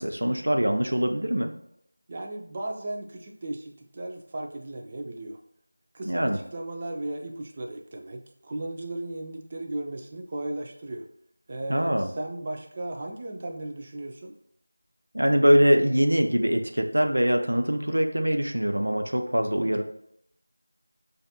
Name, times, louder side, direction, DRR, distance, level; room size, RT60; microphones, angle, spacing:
voice 1, 0.0-1.5 6.1-6.4 11.7-12.1 15.1-19.8, equal, 75° right, 4 dB, 0.7 m, -23 dB
voice 2, 2.1-5.4 5.9-11.1 11.5-14.3, right 1 dB, 20° right, 2 dB, 0.4 m, -36 dB
6.7 x 2.6 x 2.7 m, 0.73 s
figure-of-eight pair, 175°, 0 cm